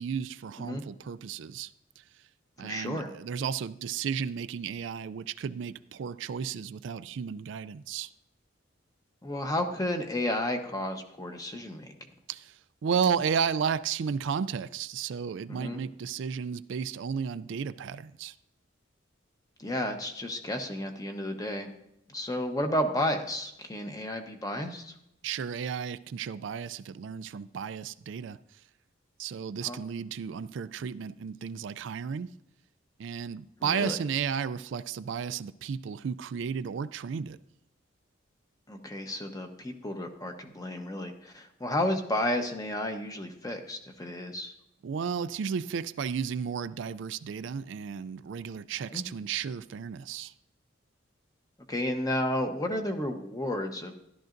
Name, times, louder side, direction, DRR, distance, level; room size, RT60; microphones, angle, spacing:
voice 1, 0.0-1.7 2.6-8.1 12.3-18.3 25.2-28.4 29.2-32.3 33.0-37.4 44.8-50.3, right 7 dB, 70° right, 0.3 m, -33 dB
voice 2, 2.6-3.1 9.2-11.9 15.5-15.8 19.6-21.7 22.1-24.9 29.6-29.8 33.6-34.0 38.7-44.5 48.9-49.0 51.7-54.0, left 1 dB, 20° left, 1.0 m, -32 dB
13.5 x 11.5 x 2.6 m
head